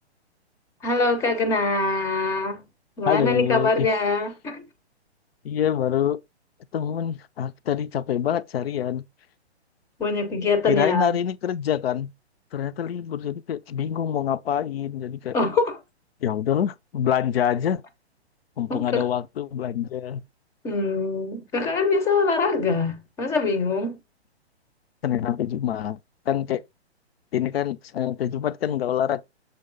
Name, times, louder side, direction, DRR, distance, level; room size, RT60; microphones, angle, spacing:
voice 1, 0.8-2.6 3.0-4.7 10.0-11.2 15.3-15.8 18.7-19.1 20.6-24.0, left 3 dB, 10° left, 0.5 m, -23 dB
voice 2, 3.1-3.9 5.4-6.2 6.7-9.1 10.7-12.1 12.5-15.4 16.2-17.8 18.6-20.2 25.0-26.0 26.3-26.6 27.3-29.2, left 10 dB, 60° left, 0.6 m, -25 dB
7.0 x 3.1 x 5.1 m
hypercardioid pair, 135°, 33 cm